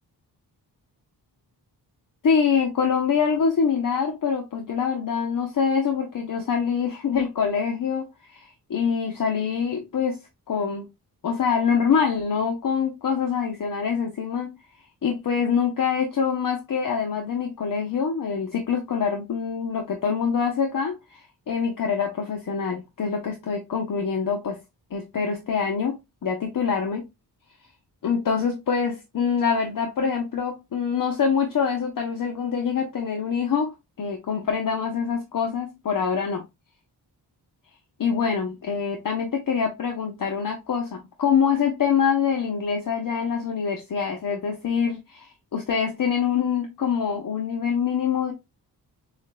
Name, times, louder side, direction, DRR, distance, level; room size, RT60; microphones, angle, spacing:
voice 1, 2.2-10.2 10.5-10.8 11.2-14.5 15.0-24.6 24.9-27.1 28.0-36.4 38.0-48.3, left 6 dB, 55° left, 0.8 m, -25 dB
7.1 x 2.5 x 2.2 m
wide cardioid pair, 165°, 40 cm